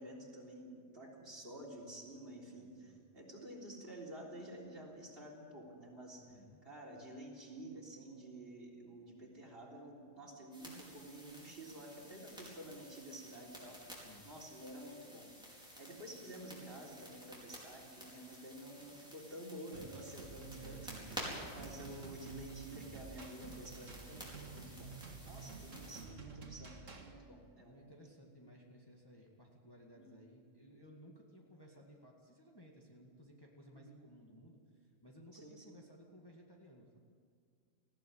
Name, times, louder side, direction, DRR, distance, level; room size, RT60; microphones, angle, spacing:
voice 1, 0.0-6.3 6.6-15.3 15.8-24.9 25.2-27.9 30.0-30.2 33.7-34.0 35.3-35.7, right 1 dB, 45° right, 0 dB, 3.9 m, -51 dB
voice 2, 2.5-3.0 6.2-6.6 14.0-14.3 18.4-18.5 20.5-21.3 25.2-26.1 27.6-37.0, equal, 15° left, -1 dB, 2.0 m, -59 dB
sound 1, 10.5-26.0, equal, 5° right, 4.9 m, -52 dB
sound 2, 19.7-27.1, right 4 dB, 70° right, 2.2 m, -51 dB
19.5 x 15.5 x 8.6 m, 2.1 s
omnidirectional pair, 1.4 m